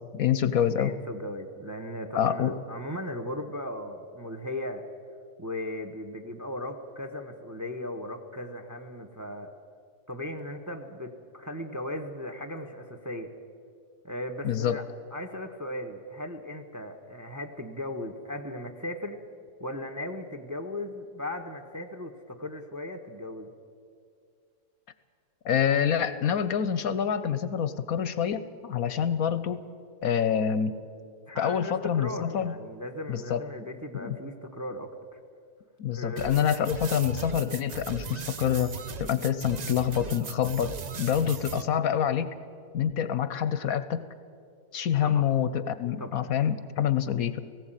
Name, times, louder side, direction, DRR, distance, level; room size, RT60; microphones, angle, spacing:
voice 1, 0.1-0.9 2.1-2.5 14.4-14.8 25.4-29.6 30.0-30.8 31.4-32.5 33.1-33.4 33.9-34.2 35.8-38.7 39.0-42.3 42.7-44.1 44.7-47.4, left 9 dB, 65° left, 13 dB, 1.1 m, -26 dB
voice 2, 0.8-4.9 5.4-9.5 10.1-13.3 14.0-14.8 15.1-19.2 19.6-23.5 31.3-35.2 35.9-36.4 45.0-45.3 46.0-46.3, left 1 dB, 15° right, 5 dB, 0.9 m, -37 dB
sound 1, 36.2-41.6, right 6 dB, 55° right, 0.4 m, -38 dB
18.5 x 16.0 x 9.0 m, 2.3 s
omnidirectional pair, 1.7 m